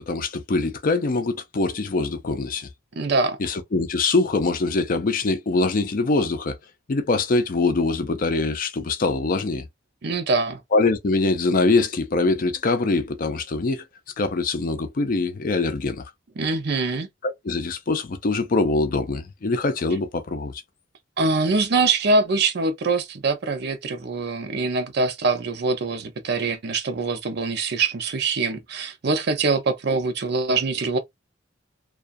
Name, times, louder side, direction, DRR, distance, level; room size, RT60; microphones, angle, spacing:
voice 1, 0.1-2.7 3.4-6.6 6.9-9.6 10.7-13.8 14.2-16.0 17.2-20.6, left 3 dB, 50° left, 0.5 m, -23 dB
voice 2, 2.9-3.4 10.0-10.6 16.4-17.1 21.2-31.0, right 3 dB, 60° right, 0.6 m, -23 dB
2.3 x 2.3 x 2.5 m
head